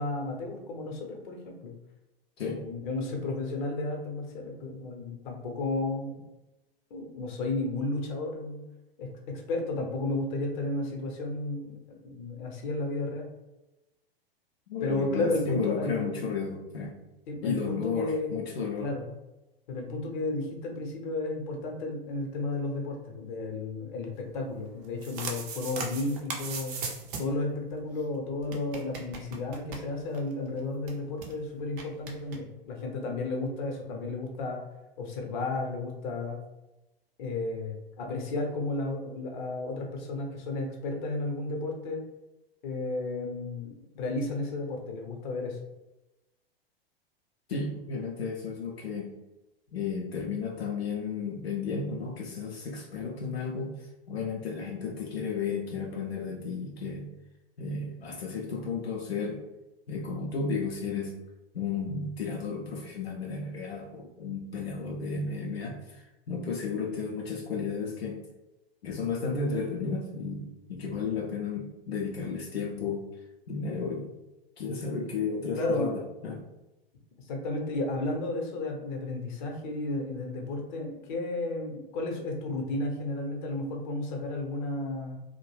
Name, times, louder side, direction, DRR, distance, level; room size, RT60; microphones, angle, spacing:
voice 1, 0.0-1.7 2.4-6.2 6.9-8.6 9.0-13.3 14.8-16.3 17.3-18.4 18.8-19.1 19.7-26.8 27.2-34.6 35.0-36.4 37.2-42.1 42.6-45.6 75.5-75.9 77.2-85.2, left 2 dB, 50° left, 2 dB, 0.7 m, -33 dB
voice 2, 14.7-17.0 17.4-18.9 47.5-49.1 49.7-57.1 57.6-59.4 59.9-61.1 61.5-68.2 68.8-73.1 73.5-74.1 74.6-76.4, left 5 dB, 85° left, -1 dB, 0.5 m, -33 dB
sound 1, 24.8-27.4 27.7-27.8 28.0-28.1 28.4-30.3 30.6-30.7 30.9-31.3 31.8-32.4, right 4 dB, 30° right, 0.5 m, -38 dB
2.3 x 2.0 x 3.1 m, 0.98 s
figure-of-eight pair, 100°, 30 cm